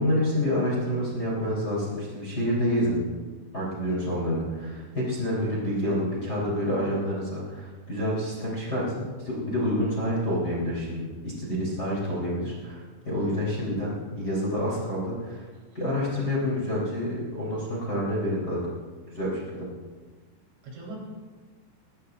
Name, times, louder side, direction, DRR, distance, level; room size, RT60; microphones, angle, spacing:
voice 1, 0.0-3.0 3.5-15.4 15.7-18.6 19.1-19.7, equal, 25° left, -5 dB, 3.1 m, -28 dB
voice 2, 13.0-13.6 20.6-21.0, right 2 dB, 75° right, -4 dB, 6.4 m, -43 dB
21.5 x 17.0 x 2.5 m, 1.4 s
omnidirectional pair, 5.8 m